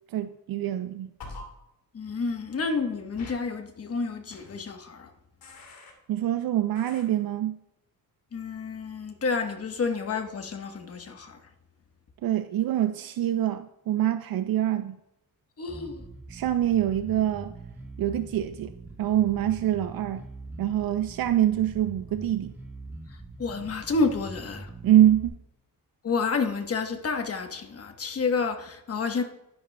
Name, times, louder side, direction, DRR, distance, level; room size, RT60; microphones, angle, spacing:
voice 1, 0.1-1.1 6.1-7.6 12.2-15.0 16.3-17.5 18.0-18.7 19.0-20.3 20.6-22.5 24.8-25.4, right 12 dB, 70° right, 0.5 m, -25 dB
sound 1, 1.2-1.4 3.2-3.3 4.3-4.6 5.4-5.9 6.7-7.0, left 3 dB, 70° left, 2.6 m, -43 dB
voice 2, 1.9-5.1 8.3-11.4 15.6-16.0 23.1-24.7 26.0-29.2, left 4 dB, 40° left, 1.1 m, -30 dB
Bass guitar, 15.7-25.3, right 2 dB, 5° right, 2.2 m, -43 dB
12.0 x 10.0 x 2.2 m
cardioid pair, 120°, 36 cm